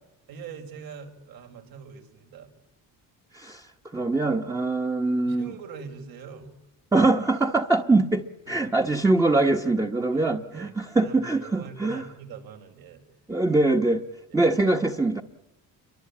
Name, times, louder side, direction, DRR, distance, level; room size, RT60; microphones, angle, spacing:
voice 1, 0.3-2.5 5.2-6.5 8.5-8.7 9.1-9.3 9.6-9.7 10.1-13.0 14.3-14.4, right 6 dB, 75° right, 5 dB, 6.0 m, -43 dB
voice 2, 3.3-3.7 3.9-5.5 6.9-12.0 13.3-14.0 14.3-15.2, right 2 dB, 10° right, 3 dB, 1.1 m, -23 dB
29.0 x 23.5 x 8.6 m, 0.91 s
cardioid pair, 155°, 36 cm